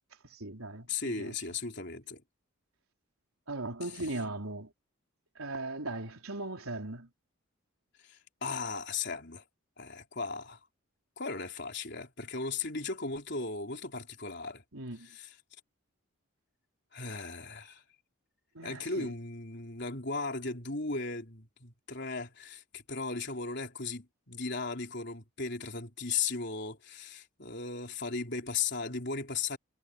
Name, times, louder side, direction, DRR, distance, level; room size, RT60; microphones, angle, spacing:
voice 1, 0.2-1.3 3.5-4.7 5.4-7.1 14.7-15.2 18.5-19.1, right 2 dB, 80° right, 4.2 m, -38 dB
voice 2, 0.9-2.2 8.0-9.4 9.8-10.6 11.2-14.6 15.0-15.3 16.9-17.8 18.6-29.6, left 4 dB, 50° left, 4.0 m, -36 dB
head